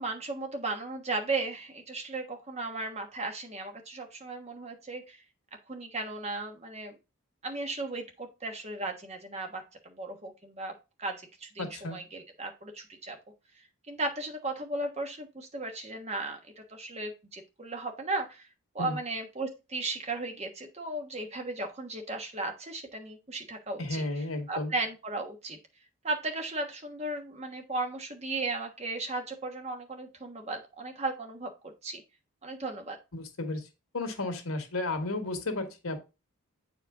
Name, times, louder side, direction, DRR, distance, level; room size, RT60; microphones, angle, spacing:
voice 1, 0.0-5.2 5.7-6.9 7.4-10.7 11.0-13.2 13.9-18.5 18.7-24.0 24.5-25.6 26.0-32.0 32.4-33.0, right 2 dB, 30° right, 4 dB, 1.3 m, -36 dB
voice 2, 11.6-12.0 18.8-19.0 23.8-24.7 33.1-33.7 33.9-36.0, left 2 dB, 85° left, 6 dB, 1.7 m, -33 dB
8.7 x 4.7 x 3.7 m, 0.28 s
head